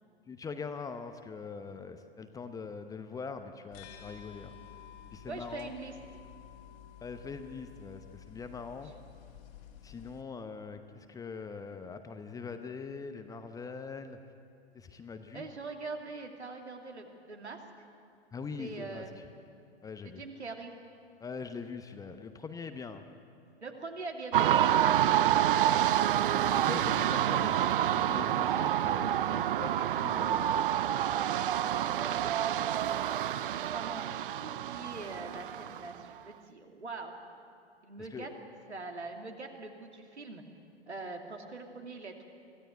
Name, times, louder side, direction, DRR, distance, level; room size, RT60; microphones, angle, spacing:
voice 1, 0.3-4.5 5.1-5.7 7.0-8.9 9.8-14.2 14.7-15.5 18.3-19.1 19.8-20.2 21.2-23.0 26.5-30.5 38.0-38.3, left 5 dB, 10° left, 8 dB, 0.9 m, -42 dB
sound 1, 3.7-10.2, left 10 dB, 40° left, 2.2 m, -52 dB
voice 2, 5.3-5.9 15.3-17.6 18.6-19.2 20.0-20.7 23.6-25.7 31.3-33.3 33.7-34.1 34.4-37.1 37.8-38.3 38.7-40.4 40.9-42.2, right 3 dB, 75° right, 3 dB, 2.8 m, -43 dB
sound 2, 24.3-36.0, right 11 dB, 50° right, 0.6 m, -28 dB
24.0 x 16.0 x 9.2 m, 2.4 s
figure-of-eight pair, 105°, 34 cm